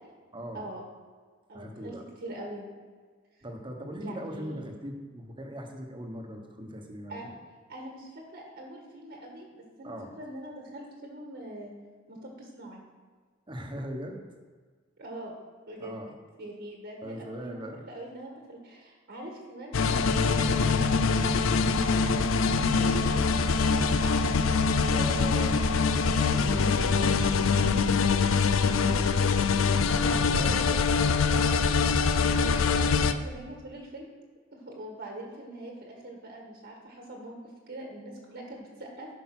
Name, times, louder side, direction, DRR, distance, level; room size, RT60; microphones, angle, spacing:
voice 1, 0.3-0.7 1.5-2.0 3.4-7.3 9.8-10.1 13.5-14.2 15.8-16.2 17.0-17.9 24.9-25.7 26.0-29.3 30.3-30.7 32.3-32.7, equal, 25° right, 2 dB, 1.2 m, -40 dB
voice 2, 1.5-1.9 2.2-2.7 4.0-4.7 7.1-7.3 7.7-11.7 12.1-12.8 15.0-15.4 15.7-16.0 16.4-21.2 22.3-24.4 24.9-25.8 28.5-29.5 29.9-30.8 31.1-31.7 32.3-34.1 34.5-37.4 37.7-39.1, right 1 dB, 55° right, 0 dB, 1.6 m, -43 dB
sound 1, 19.7-33.1, left 4 dB, 70° left, 0.5 m, -24 dB
10.5 x 5.2 x 6.0 m, 1.5 s
head